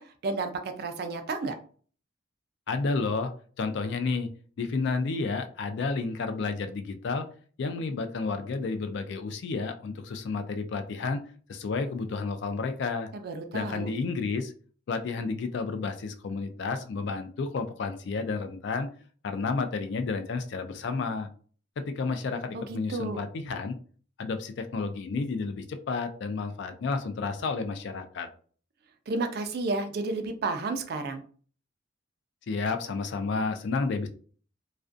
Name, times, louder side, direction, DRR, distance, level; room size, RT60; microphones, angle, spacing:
voice 1, 0.0-1.6 13.1-13.9 22.5-23.2 29.1-31.2, right 3 dB, 50° right, 7 dB, 0.4 m, -32 dB
voice 2, 2.7-3.3 3.6-4.3 4.6-7.3 7.6-11.2 11.5-13.1 13.5-14.5 14.9-18.9 19.2-21.3 21.8-23.8 24.2-28.3 32.5-34.1, left 4 dB, 60° left, 8 dB, 0.3 m, -31 dB
2.4 x 2.2 x 2.5 m, 0.44 s
head